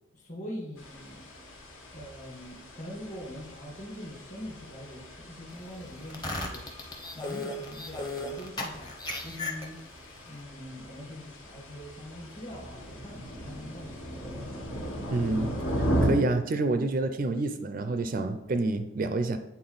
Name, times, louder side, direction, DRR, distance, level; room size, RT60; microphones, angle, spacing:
voice 1, 0.1-1.3 1.9-6.7 7.1-8.9 9.2-9.8 10.2-14.5, equal, 35° left, 0 dB, 1.6 m, -43 dB
sound 1, 0.8-16.1, equal, 80° left, 1.7 m, -37 dB
sound 2, 6.0-10.0, left 2 dB, 20° left, 0.7 m, -36 dB
voice 2, 15.1-15.6 16.0-19.4, right 2 dB, 40° right, 9 dB, 0.4 m, -28 dB
8.6 x 4.1 x 4.0 m, 1.1 s
head